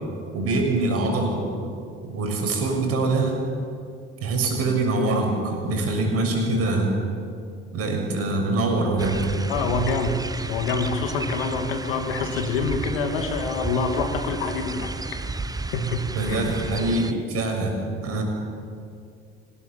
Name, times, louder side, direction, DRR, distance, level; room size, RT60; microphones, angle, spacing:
voice 1, 0.3-1.5 2.0-3.4 4.2-7.0 7.7-9.2 16.1-17.7 18.0-18.2, right 2 dB, 50° right, 2 dB, 6.6 m, -24 dB
sound 1, 9.0-17.1, right 3 dB, 10° right, 1.3 m, -33 dB
voice 2, 9.5-10.2 10.5-14.9 15.7-16.4, left 3 dB, 70° left, 5 dB, 2.6 m, -26 dB
25.5 x 19.5 x 7.6 m, 2.4 s
figure-of-eight pair, 60°, 30 cm